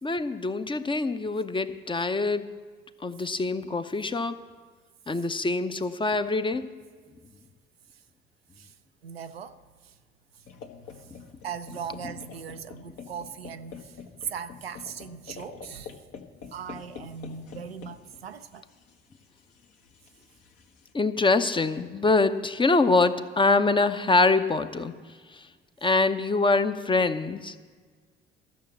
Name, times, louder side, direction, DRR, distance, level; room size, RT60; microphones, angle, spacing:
voice 1, 0.0-2.5 3.0-4.4 5.1-6.7 20.9-24.9 25.8-27.5, left 3 dB, 15° left, 0.7 m, -24 dB
voice 2, 9.0-9.6 9.8-9.9 11.0-11.1 11.4-14.0 14.3-16.0 16.5-18.6, right 7 dB, 85° right, 0.5 m, -39 dB
sound 1, 10.5-20.9, left 6 dB, 55° left, 1.3 m, -47 dB
14.0 x 6.6 x 7.5 m
figure-of-eight pair, 50°, 29 cm